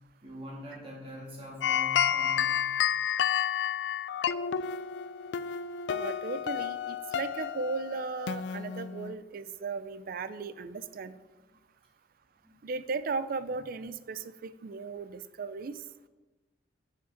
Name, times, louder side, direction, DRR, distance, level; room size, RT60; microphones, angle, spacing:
voice 1, 0.2-2.5 12.4-12.6, equal, 35° right, -4 dB, 2.7 m, -43 dB
sound 1, 1.6-9.1, left 9 dB, 80° left, 0.3 m, -30 dB
voice 2, 5.9-11.1 12.6-15.8, right 4 dB, 55° right, 14 dB, 0.4 m, -36 dB
11.5 x 5.2 x 3.9 m, 1.1 s
head